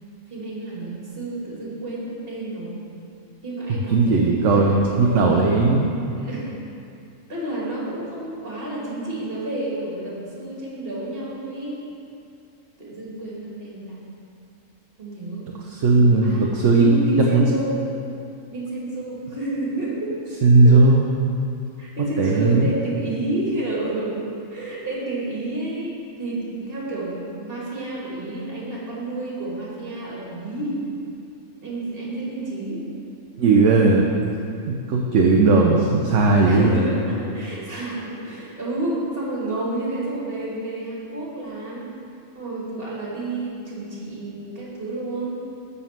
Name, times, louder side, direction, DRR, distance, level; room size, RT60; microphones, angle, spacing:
voice 1, 0.3-2.8 3.4-5.6 6.2-6.6 7.3-11.8 12.8-14.0 15.0-15.5 16.0-17.8 18.5-20.1 20.6-20.8 21.8-24.2 24.5-30.8 31.6-32.9 36.4-41.9 42.3-45.4, right 2 dB, 40° right, -6 dB, 2.5 m, -30 dB
voice 2, 3.9-5.9 15.7-17.0 17.3-17.5 20.4-21.0 22.2-22.7 33.4-34.3 34.7-36.8, right 3 dB, 60° right, -1 dB, 1.0 m, -17 dB
11.0 x 4.3 x 7.3 m, 2.5 s
omnidirectional pair, 1.5 m